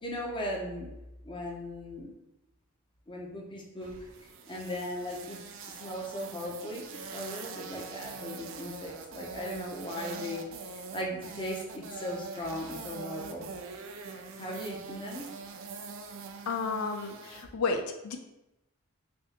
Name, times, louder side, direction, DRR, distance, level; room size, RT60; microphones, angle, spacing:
voice 1, 0.0-0.9 1.2-2.1 3.1-3.9 4.5-5.4 5.7-13.5 14.4-15.3, left 1 dB, 20° left, -2 dB, 0.5 m, -38 dB
sound 1, 3.8-17.4, right 5 dB, 65° right, 0.4 m, -43 dB
voice 2, 16.5-18.2, left 4 dB, 90° left, 6 dB, 0.4 m, -32 dB
3.5 x 2.7 x 2.8 m, 0.93 s
head